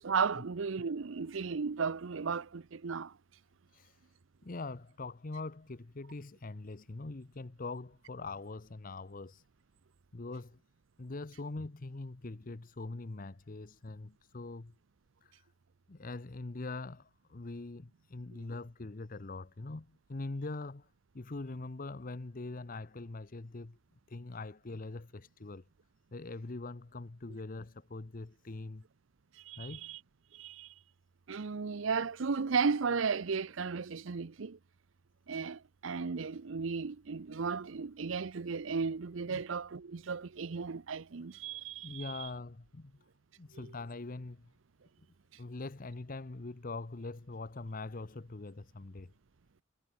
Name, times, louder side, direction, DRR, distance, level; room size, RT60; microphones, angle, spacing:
voice 1, 0.0-3.1 18.3-18.4 29.4-30.0 30.3-30.7 31.3-34.6 35.3-42.3 43.5-43.7, right 5 dB, 70° right, 0.6 m, -35 dB
voice 2, 3.7-4.1 4.4-9.4 10.1-10.6 11.0-14.7 15.2-15.5 15.9-20.9 21.1-23.8 24.1-25.6 26.1-28.9 29.6-30.0 39.3-39.4 41.8-43.0 43.4-44.5 45.4-49.1, left 3 dB, 45° left, 0.8 m, -43 dB
head